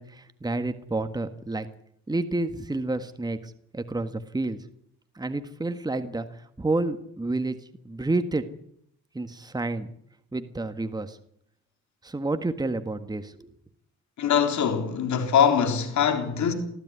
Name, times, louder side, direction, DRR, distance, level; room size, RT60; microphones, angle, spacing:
voice 1, 0.0-1.7 2.1-4.6 5.1-6.3 6.6-7.6 7.8-8.4 9.1-9.9 10.3-11.2 12.0-13.5, right 2 dB, 15° right, 1.6 m, -29 dB
voice 2, 14.2-16.5, left 7 dB, 70° left, 3.9 m, -22 dB
20.5 x 14.0 x 9.6 m
cardioid pair, 90°, 30 cm